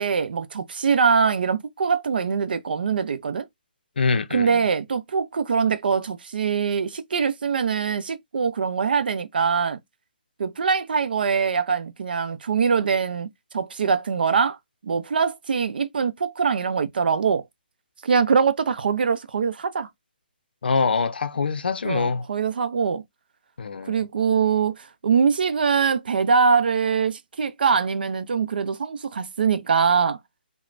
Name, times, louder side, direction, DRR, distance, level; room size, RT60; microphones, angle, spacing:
voice 1, 0.0-3.5 4.3-9.8 10.4-14.6 14.8-17.4 18.0-19.9 21.8-23.0 23.9-30.2, right 6 dB, 70° right, 0.5 m, -23 dB
voice 2, 4.0-4.6 20.6-22.3 23.6-24.0, left 4 dB, 80° left, 0.5 m, -24 dB
3.1 x 2.1 x 2.4 m
hypercardioid pair, 160°, 5 cm